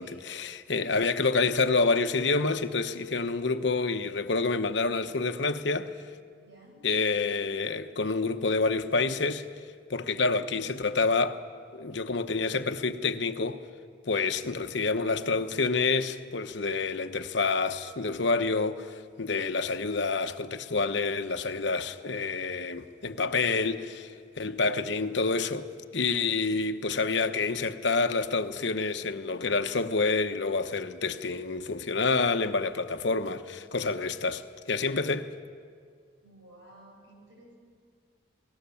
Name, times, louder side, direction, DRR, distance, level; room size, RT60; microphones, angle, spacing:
voice 1, 0.0-5.9 6.8-9.5 9.9-11.4 11.7-13.6 14.1-35.3, left 4 dB, 70° left, 1.0 m, -28 dB
voice 2, 6.4-6.8 36.2-37.5, right 1 dB, 80° right, 8.0 m, -54 dB
28.0 x 19.5 x 7.1 m
head